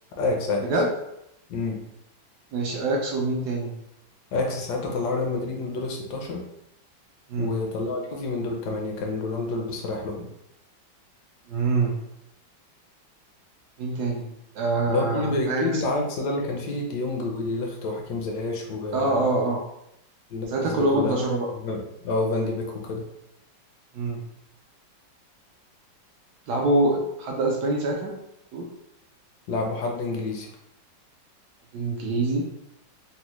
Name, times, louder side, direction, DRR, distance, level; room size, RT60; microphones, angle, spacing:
voice 1, 0.2-0.6 1.5-1.8 4.3-6.4 7.4-10.3 14.9-19.3 20.3-21.2 21.5-23.0 29.5-30.5, left 3 dB, 70° left, 1 dB, 1.1 m, -28 dB
voice 2, 2.5-3.8 7.3-7.5 11.5-12.0 13.8-15.6 18.9-19.6 20.5-21.5 23.9-24.2 26.5-28.2 28.5-28.7 31.7-32.5, right 2 dB, 75° right, 0 dB, 1.0 m, -25 dB
3.9 x 2.0 x 2.9 m, 0.82 s
omnidirectional pair, 2.1 m